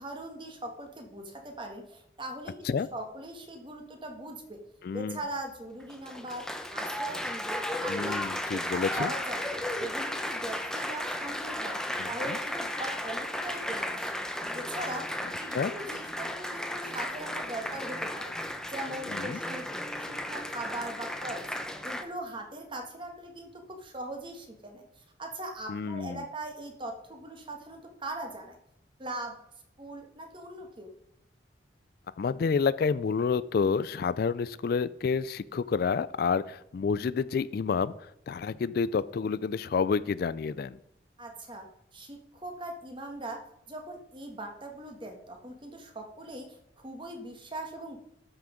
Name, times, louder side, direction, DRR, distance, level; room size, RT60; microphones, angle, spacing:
voice 1, 0.0-4.6 4.9-9.5 9.8-11.8 12.1-14.1 14.5-15.0 15.4-18.3 18.7-19.7 20.0-21.4 21.8-28.6 29.0-29.4 29.8-30.9 41.2-43.4 43.7-48.0, right 1 dB, 25° right, 3 dB, 1.6 m, -40 dB
voice 2, 4.8-5.2 7.9-9.1 12.0-12.1 15.5-15.7 19.1-19.4 25.7-26.2 32.2-37.9 38.3-40.8, left 5 dB, 55° left, 17 dB, 0.3 m, -29 dB
Applause, 5.8-22.0, left 1 dB, 5° left, 0.7 m, -34 dB
12.5 x 6.0 x 5.1 m, 0.82 s
head